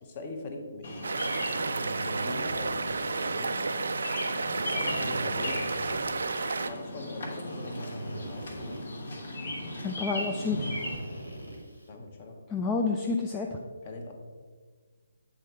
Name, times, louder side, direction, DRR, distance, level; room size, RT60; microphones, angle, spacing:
voice 1, 0.0-1.4 2.0-3.5 4.4-6.0 6.6-8.9 11.9-12.4 13.8-14.1, left 2 dB, 30° left, 3 dB, 0.9 m, -42 dB
Bird vocalization bird call bird song, 0.8-11.0, left 1 dB, 50° left, 1.1 m, -37 dB
sound 1, 1.0-6.7, right 4 dB, 55° right, 0.3 m, -31 dB
Drill, 1.5-3.8 4.5-6.8 7.4-9.3 10.5-11.9, right 1 dB, 75° left, 1.8 m, -42 dB
voice 2, 9.8-10.7 12.5-13.6, left 4 dB, 15° left, 1 dB, 0.4 m, -29 dB
7.7 x 3.7 x 4.3 m, 1.5 s
figure-of-eight pair, 140°, 0 cm